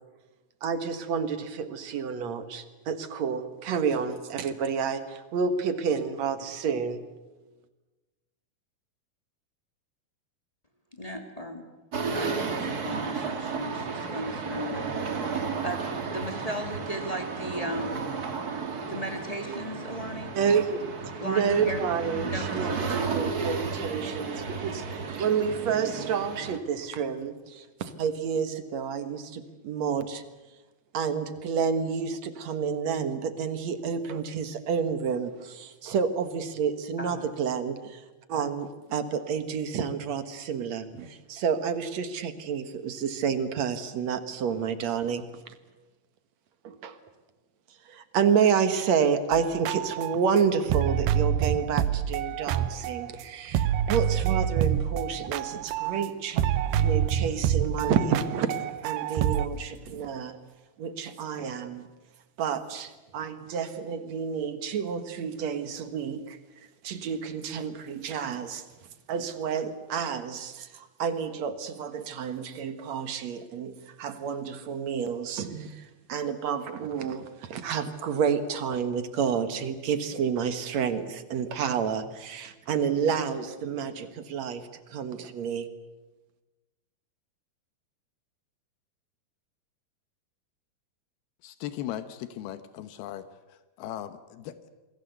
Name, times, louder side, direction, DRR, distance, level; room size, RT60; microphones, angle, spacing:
voice 1, 0.6-7.0 20.3-20.8 21.2-30.2 30.9-38.0 38.3-45.5 46.6-47.0 47.9-56.5 56.7-60.4 60.8-61.9 62.4-66.4 66.8-68.7 69.1-85.7, right 6 dB, 55° right, 10 dB, 2.3 m, -29 dB
voice 2, 10.9-11.6 12.1-14.8 15.6-15.8 16.1-18.0 18.8-20.3 21.2-21.8 22.2-22.9 37.0-37.3, equal, 10° left, 4 dB, 2.0 m, -36 dB
sound 1, 11.9-26.6, right 5 dB, 35° right, 1.8 m, -33 dB
sound 2, 49.3-53.2 53.5-56.1 56.4-59.5, right 10 dB, 90° right, 2.9 m, -27 dB
voice 3, 91.4-94.7, left 11 dB, 85° left, 11 dB, 3.0 m, -38 dB
28.0 x 21.0 x 8.1 m, 1.1 s
omnidirectional pair, 4.3 m